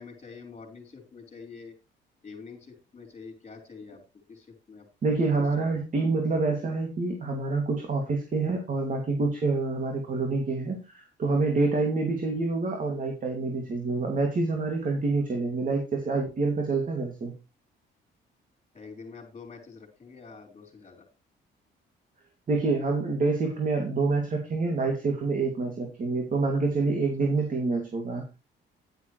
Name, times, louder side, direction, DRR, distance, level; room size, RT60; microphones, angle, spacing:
voice 1, 0.0-1.7 2.2-4.0 4.3-5.3 5.6-5.8 18.7-21.0, left 5 dB, 35° left, 2 dB, 4.6 m, -46 dB
voice 2, 5.0-17.3 22.5-28.2, right 3 dB, 40° right, 2 dB, 2.6 m, -27 dB
10.5 x 9.7 x 3.2 m, 0.29 s
cardioid pair, 90°, 20 cm